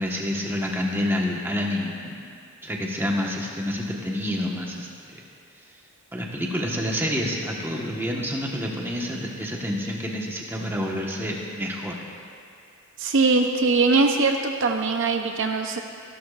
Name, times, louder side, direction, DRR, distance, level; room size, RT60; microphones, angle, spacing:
voice 1, 0.0-2.2 2.6-5.2 6.1-12.0, equal, 10° right, -2 dB, 1.3 m, -28 dB
voice 2, 13.0-15.8, right 3 dB, 60° right, 4 dB, 0.7 m, -21 dB
25.5 x 12.0 x 2.5 m, 2.3 s
head